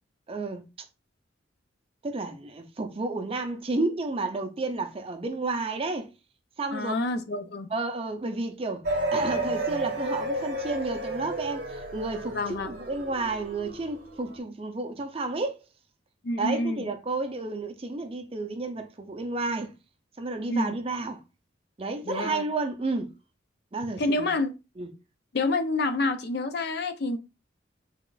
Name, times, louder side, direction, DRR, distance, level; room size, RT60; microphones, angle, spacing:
voice 1, 0.3-0.7 2.0-6.1 6.6-6.9 7.7-8.8 9.1-15.6 16.4-19.7 20.2-21.2 21.8-23.1 23.7-24.3 24.8-24.9, right 3 dB, 30° right, 0.5 m, -31 dB
voice 2, 6.7-7.7 12.3-12.7 16.2-16.9 20.5-20.8 22.0-22.4 24.0-24.5 25.3-27.2, left 2 dB, 55° left, 0.5 m, -28 dB
sound 1, 8.8-14.4, right 1 dB, 50° right, 0.8 m, -32 dB
3.6 x 2.4 x 3.8 m
head